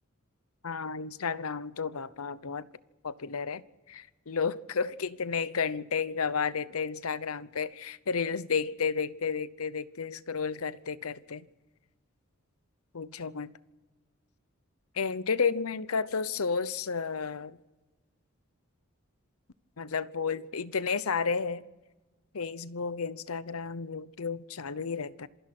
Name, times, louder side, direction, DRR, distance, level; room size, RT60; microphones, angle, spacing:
voice 1, 0.6-2.7 3.0-3.6 3.9-11.5 12.9-13.5 14.9-17.6 19.8-21.6 22.3-25.3, left 5 dB, 80° left, 0.8 m, -32 dB
27.0 x 17.0 x 6.1 m
head